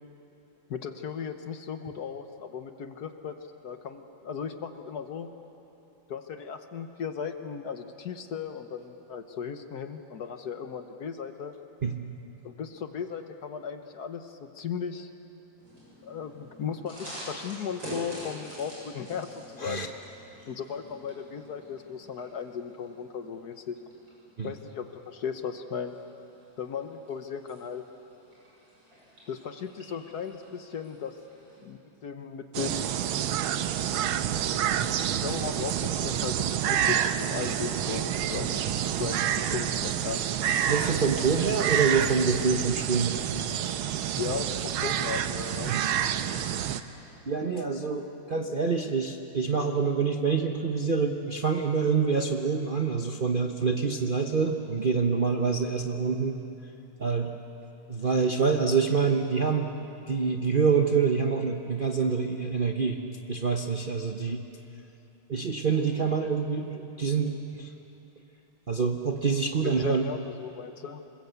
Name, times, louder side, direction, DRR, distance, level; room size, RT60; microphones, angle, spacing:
voice 1, 0.7-3.4 3.6-5.3 6.1-11.5 12.4-15.1 16.0-19.9 20.5-23.8 24.4-25.9 26.6-27.8 29.3-31.2 31.6-32.9 35.2-38.6 38.9-40.2 44.2-45.7 69.6-71.1, left 7 dB, 55° left, 8 dB, 1.4 m, -36 dB
sound 1, 15.6-31.6, equal, 65° right, 8.3 m, -47 dB
sound 2, 32.5-46.8, right 10 dB, 90° right, 1.7 m, -28 dB
voice 2, 40.7-43.3 45.7-45.9 47.3-56.4 57.0-57.3 57.9-59.7 60.1-63.0 63.3-64.4 65.3-67.7 68.7-70.1, right 5 dB, 40° right, 3 dB, 0.8 m, -26 dB
27.0 x 21.0 x 8.2 m, 2.9 s
omnidirectional pair, 2.2 m